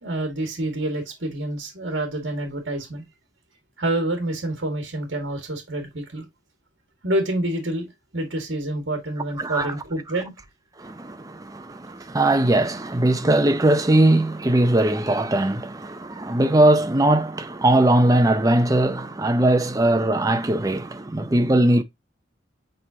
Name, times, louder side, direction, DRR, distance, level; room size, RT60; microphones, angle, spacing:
voice 1, 0.0-3.1 3.8-6.2 7.0-10.3, right 1 dB, 65° right, 2.0 m, -27 dB
voice 2, 9.4-9.7 10.8-21.8, right 1 dB, 20° right, 0.6 m, -20 dB
7.7 x 4.6 x 2.8 m
head